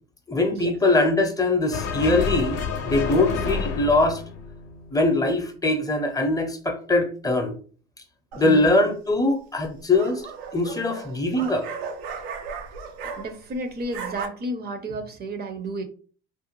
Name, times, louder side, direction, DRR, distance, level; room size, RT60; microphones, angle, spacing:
voice 1, 0.3-4.2 4.9-7.5 8.4-10.2 10.5-11.7, left 2 dB, 10° left, 0.6 m, -22 dB
sound 1, 1.7-5.2, left 5 dB, 55° left, 0.6 m, -29 dB
voice 2, 8.3-8.7 13.2-15.8, right 2 dB, 30° right, 0.6 m, -32 dB
sound 2, 8.3-8.8 9.6-13.5 13.8-14.3, right 5 dB, 80° right, 0.6 m, -36 dB
2.5 x 2.2 x 3.0 m
hypercardioid pair, 60°, 30 cm